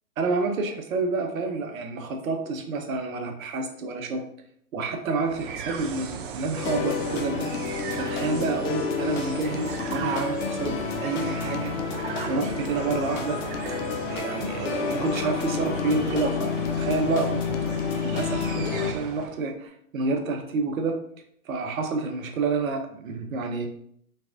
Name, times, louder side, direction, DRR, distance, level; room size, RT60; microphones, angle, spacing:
voice 1, 0.2-4.3 4.7-7.5 7.9-11.7 12.3-13.4 14.1-17.5 18.0-21.0 21.4-23.7, right 3 dB, 70° right, 5 dB, 0.9 m, -29 dB
sound 1, 5.2-19.4, right 6 dB, 40° right, 0.5 m, -36 dB
sound 2, 6.6-18.9, left 6 dB, 55° left, 0.7 m, -30 dB
4.5 x 3.6 x 2.5 m, 0.66 s
hypercardioid pair, 130°, 43 cm